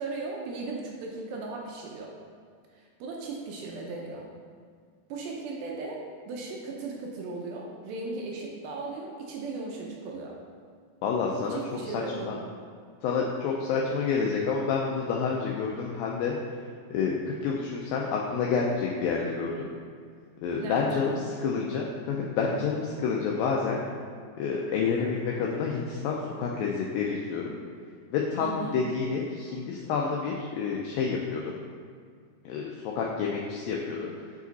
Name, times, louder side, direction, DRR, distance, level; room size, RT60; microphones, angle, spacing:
voice 1, 0.0-2.1 2.7-4.3 5.1-10.4 11.5-12.4 20.6-21.1 28.4-28.8, right 3 dB, 75° right, -1 dB, 2.3 m, -37 dB
voice 2, 11.0-11.6 11.9-12.4 13.0-16.4 16.9-19.7 20.4-23.8 24.4-27.6 28.1-31.5 32.5-34.1, left 5 dB, 85° left, -2 dB, 2.0 m, -29 dB
7.1 x 4.9 x 4.0 m, 2.1 s
omnidirectional pair, 4.7 m